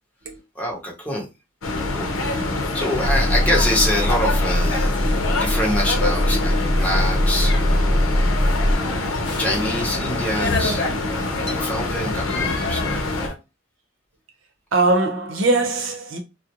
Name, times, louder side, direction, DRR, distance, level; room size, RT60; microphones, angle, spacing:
voice 1, 0.5-1.3 1.8-8.7 9.4-13.0, equal, 10° left, 0.8 m, -26 dB
sound 1, 1.6-13.3, left 2 dB, 85° left, 0.6 m, -26 dB
sound 2, 2.1-13.3, left 2 dB, 60° left, 0.8 m, -31 dB
sound 3, 3.0-8.7, left 1 dB, 30° left, 0.4 m, -21 dB
voice 2, 14.7-16.2, right 2 dB, 75° right, 0.7 m, -20 dB
2.5 x 2.1 x 2.9 m
head